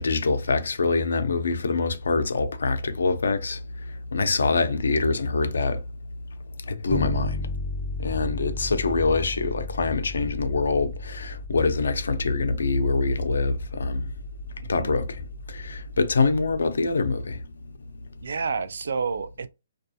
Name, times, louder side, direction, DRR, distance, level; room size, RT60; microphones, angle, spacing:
voice 1, 0.0-3.6 4.1-5.8 6.7-7.4 8.0-14.0 14.7-15.1 15.5-17.4, left 3 dB, 85° left, 0.5 m, -24 dB
voice 2, 4.3-4.6 14.6-14.9 18.2-19.5, right 5 dB, 75° right, 0.3 m, -30 dB
Bass guitar, 6.9-16.6, left 2 dB, ahead, 0.5 m, -36 dB
2.3 x 2.3 x 2.6 m
hypercardioid pair, 165°, 0 cm